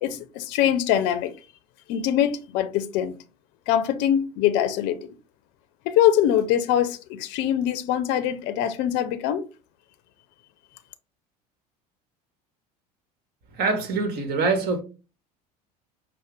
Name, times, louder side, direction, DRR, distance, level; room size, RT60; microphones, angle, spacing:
voice 1, 0.0-1.3 1.9-3.1 3.7-5.0 5.9-9.4, left 10 dB, 60° left, 0.5 m, -23 dB
voice 2, 13.5-14.8, right 3 dB, 50° right, 1.4 m, -24 dB
5.6 x 2.1 x 3.3 m
hypercardioid pair, 80°, 20 cm